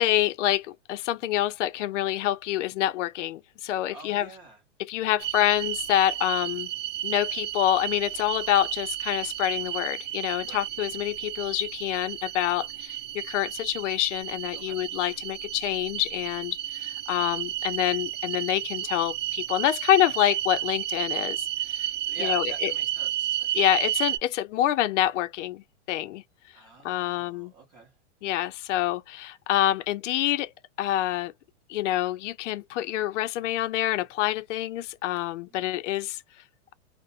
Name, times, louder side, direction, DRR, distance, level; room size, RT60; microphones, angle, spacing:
voice 1, 0.0-4.3 4.9-6.7 7.0-21.4 21.7-21.9 22.2-22.7 23.5-26.2 26.8-27.5 28.2-30.5 30.8-31.3 31.7-36.2, left 13 dB, 75° left, 0.5 m, -27 dB
voice 2, 3.9-4.6 10.4-10.6 14.5-14.8 22.0-23.8 26.5-27.9 35.5-35.7, right 3 dB, 20° right, 0.6 m, -47 dB
sound 1, 5.2-24.2, right 12 dB, 85° right, 0.6 m, -32 dB
2.5 x 2.1 x 2.5 m
supercardioid pair, 165°, 37 cm